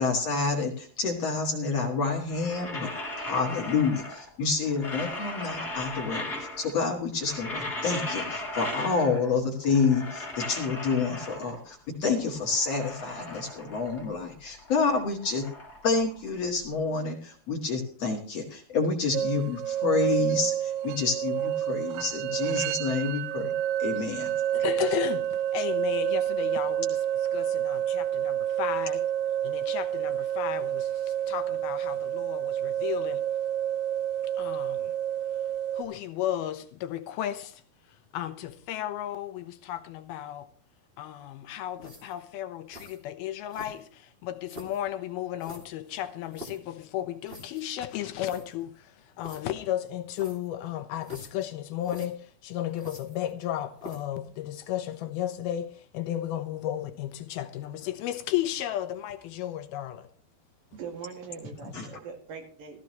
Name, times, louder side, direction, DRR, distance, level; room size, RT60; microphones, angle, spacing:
voice 1, 0.0-2.9 3.3-15.5 15.8-23.5 23.8-24.3 61.7-61.9, left 4 dB, 50° left, 2.3 m, -28 dB
sound 1, 2.2-4.4 4.6-6.8 7.1-9.4 9.6-11.7 12.2-14.2 14.5-16.7, left 2 dB, 15° left, 3.2 m, -37 dB
sound 2, 19.1-35.8, right 11 dB, 85° right, 2.7 m, -29 dB
voice 2, 24.5-29.1 29.4-33.3 34.4-34.9 35.7-37.6 37.9-40.5 41.0-60.1, left 12 dB, 80° left, 2.6 m, -34 dB
sound 3, 41.8-42.2 42.7-43.0 43.5-44.0 44.5-44.8 45.4-46.7 47.3-47.6 47.9-48.0 48.2-48.5 49.2-49.4 50.1-50.5 51.0-51.5 51.8-52.1 52.8-53.4 53.8-54.1, equal, 20° right, 2.0 m, -45 dB
voice 3, 60.7-62.8, right 6 dB, 60° right, 3.8 m, -41 dB
15.5 x 14.5 x 3.1 m
omnidirectional pair, 4.6 m